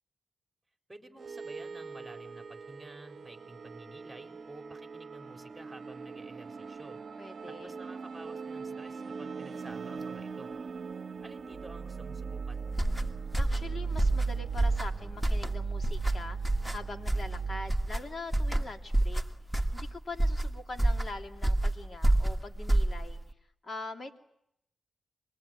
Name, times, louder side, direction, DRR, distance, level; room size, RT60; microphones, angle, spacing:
voice 1, 0.9-7.0 7.5-10.5 11.2-12.6, right 2 dB, 15° right, 4 dB, 4.2 m, -51 dB
sound 1, 1.2-17.7, right 5 dB, 50° right, 1.2 m, -39 dB
voice 2, 7.2-7.8 13.3-16.4 16.7-19.2 19.7-23.2 23.6-24.2, left 3 dB, 40° left, 4 dB, 2.9 m, -43 dB
sound 2, 12.7-23.3, right 1 dB, 5° left, 2.1 m, -29 dB
27.0 x 21.0 x 9.1 m, 0.77 s
cardioid pair, 95°, 0 cm